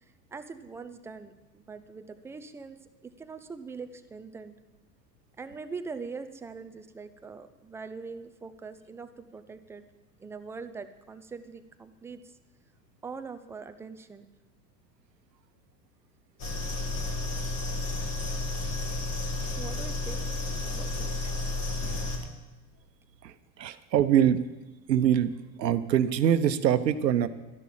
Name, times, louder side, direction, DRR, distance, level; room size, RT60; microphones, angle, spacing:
voice 1, 0.3-2.8 3.0-4.6 5.4-9.8 10.2-12.4 13.0-14.3 19.6-20.2 20.6-21.2, right 4 dB, 5° right, 9 dB, 0.3 m, -42 dB
sound 1, 16.4-22.2, left 2 dB, 40° left, 3.6 m, -32 dB
voice 2, 23.2-24.5 24.9-25.3 25.6-27.3, right 10 dB, 75° right, 12 dB, 1.0 m, -24 dB
12.5 x 11.0 x 7.5 m, 1.1 s
hypercardioid pair, 90°, 50 cm